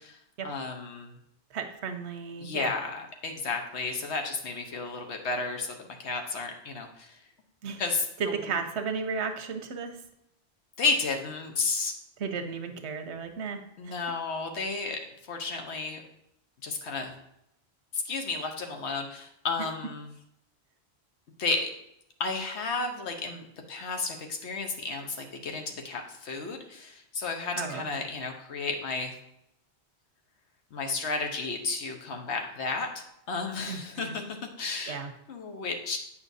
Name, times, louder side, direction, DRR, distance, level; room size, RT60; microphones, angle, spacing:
voice 1, 0.1-1.1 2.4-7.2 7.8-8.3 10.8-11.9 13.2-13.3 13.8-15.0 15.3-16.0 16.6-17.1 17.9-20.1 21.4-21.7 22.2-29.1 30.7-35.0 35.3-36.0, left 4 dB, 85° left, 3 dB, 1.2 m, -32 dB
voice 2, 1.5-2.7 7.6-7.8 8.2-10.0 12.2-13.9 27.6-28.0 33.7-34.2 34.9-35.1, right 5 dB, 85° right, 7 dB, 1.0 m, -34 dB
8.4 x 5.6 x 2.7 m, 0.79 s
omnidirectional pair, 1.1 m